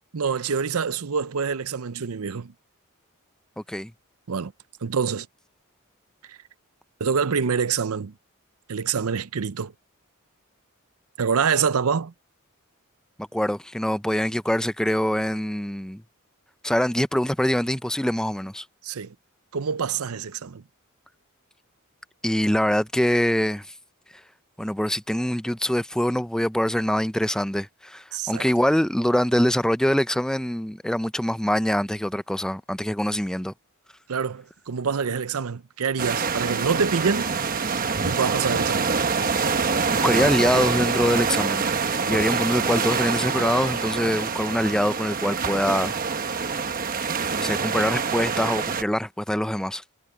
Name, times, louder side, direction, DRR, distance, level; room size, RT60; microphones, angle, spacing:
voice 1, 0.1-2.5 4.3-4.5 4.8-5.3 6.3-6.4 7.0-8.1 8.7-9.7 11.2-12.1 18.8-19.1 19.5-20.6 28.1-28.4 34.1-37.4 38.1-38.9, right 6 dB, 85° right, 0.6 m, -26 dB
voice 2, 13.3-16.0 16.6-18.6 22.2-23.7 24.6-33.5 39.9-41.7 42.1-45.9 47.4-49.8, equal, 5° left, 0.5 m, -24 dB
sound 1, 36.0-48.8, right 5 dB, 40° right, 1.1 m, -25 dB
head